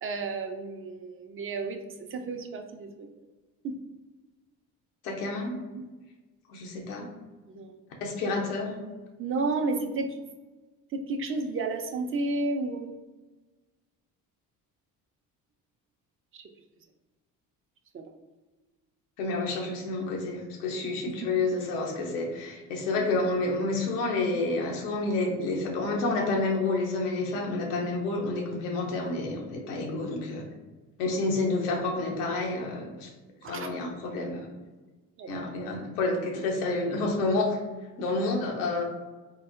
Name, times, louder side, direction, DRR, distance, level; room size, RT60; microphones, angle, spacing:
voice 1, 0.0-3.1 3.6-3.7 5.7-5.8 7.5-7.7 9.2-10.2 10.9-12.9 16.3-16.4 17.9-18.0 20.8-21.3 33.4-33.7 35.2-35.3, right 3 dB, 30° right, 5 dB, 0.5 m, -32 dB
voice 2, 5.0-5.5 6.5-7.1 8.0-8.8 19.2-30.5 31.0-33.1 33.5-34.5 35.3-37.6 38.0-38.8, left 3 dB, 90° left, 1 dB, 0.7 m, -29 dB
3.9 x 2.0 x 2.5 m, 1.2 s
hypercardioid pair, 55°, 44 cm